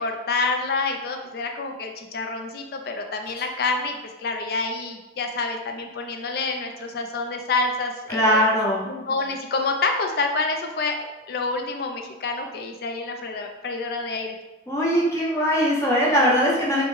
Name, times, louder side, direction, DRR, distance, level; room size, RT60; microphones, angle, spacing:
voice 1, 0.0-8.4 8.9-14.4, left 3 dB, 55° left, 4 dB, 0.3 m, -28 dB
voice 2, 8.1-8.8 14.7-16.8, equal, 15° left, -5 dB, 0.6 m, -20 dB
3.0 x 2.1 x 3.2 m, 1.0 s
head